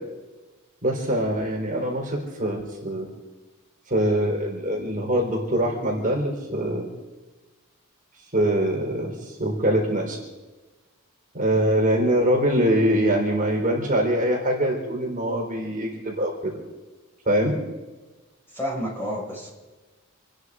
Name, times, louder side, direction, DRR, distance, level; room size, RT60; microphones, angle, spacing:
voice 1, 0.8-3.1 3.9-6.9 8.3-10.2 11.3-16.5 17.3-17.5, right 1 dB, 40° right, -1 dB, 4.1 m, -23 dB
voice 2, 18.5-19.5, equal, 10° left, -4 dB, 5.6 m, -30 dB
28.0 x 10.0 x 4.9 m, 1.2 s
head